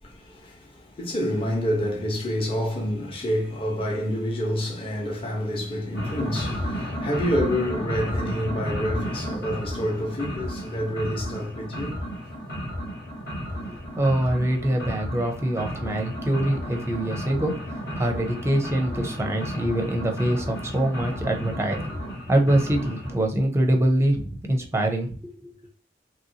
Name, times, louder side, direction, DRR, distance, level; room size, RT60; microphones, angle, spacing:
voice 1, 0.0-12.0, equal, 30° left, 0.9 m, -28 dB
sound 1, 5.9-23.2, equal, 65° left, 1.1 m, -33 dB
voice 2, 13.7-21.8 22.3-25.5, right 1 dB, 15° right, 0.5 m, -24 dB
3.0 x 2.7 x 2.7 m
head